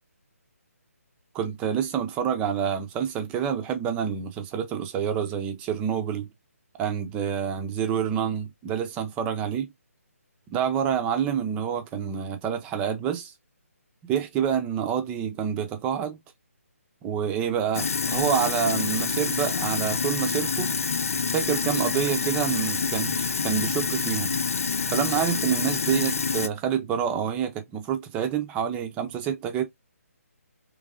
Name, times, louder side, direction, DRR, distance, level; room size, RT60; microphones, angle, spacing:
voice 1, 1.3-6.3 6.8-9.7 10.5-13.3 14.0-16.2 17.0-20.7 21.3-24.3 24.9-29.6, right 8 dB, 15° right, 0.7 m, -27 dB
Sink (filling or washing), 17.7-26.5, left 5 dB, 65° left, 0.8 m, -27 dB
3.7 x 3.3 x 3.5 m
hypercardioid pair, 155°, 8 cm